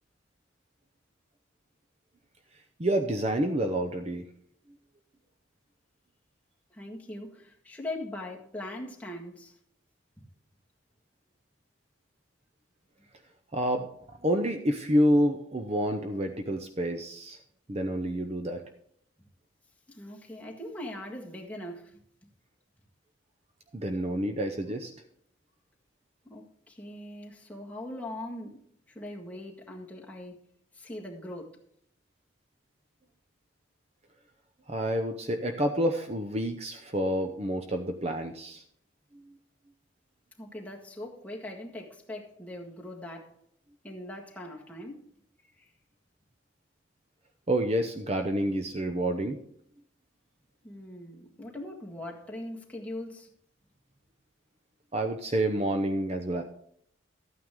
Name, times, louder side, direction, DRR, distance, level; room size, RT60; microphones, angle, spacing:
voice 1, 2.8-4.2 13.5-13.9 14.2-17.4 17.7-18.6 23.7-24.9 34.7-38.6 39.1-39.3 47.5-49.4 54.9-56.4, right 1 dB, 30° right, 6 dB, 0.7 m, -28 dB
voice 2, 6.7-9.6 10.2-10.3 19.9-22.0 26.2-28.6 28.9-30.4 30.7-31.5 40.4-43.3 43.8-45.0 45.5-45.7 50.6-53.3, left 1 dB, 5° left, -2 dB, 1.7 m, -41 dB
13.0 x 9.2 x 3.7 m, 0.67 s
head